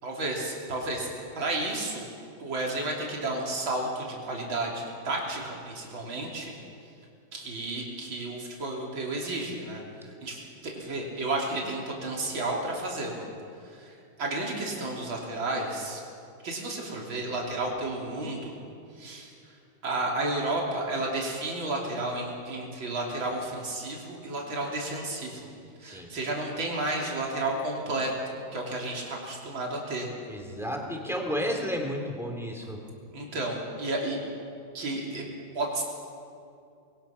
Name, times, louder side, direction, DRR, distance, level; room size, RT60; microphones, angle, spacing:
voice 1, 0.0-2.1 2.4-6.5 7.3-9.8 10.2-13.3 13.7-16.0 16.4-18.6 19.0-19.3 19.8-25.5 25.8-30.1 33.1-34.2 34.7-35.2 35.5-35.8, right 2 dB, 70° right, -2 dB, 3.9 m, -32 dB
voice 2, 30.3-32.8, equal, ahead, 1 dB, 3.1 m, -32 dB
26.5 x 21.5 x 5.9 m, 2.5 s
omnidirectional pair, 2.2 m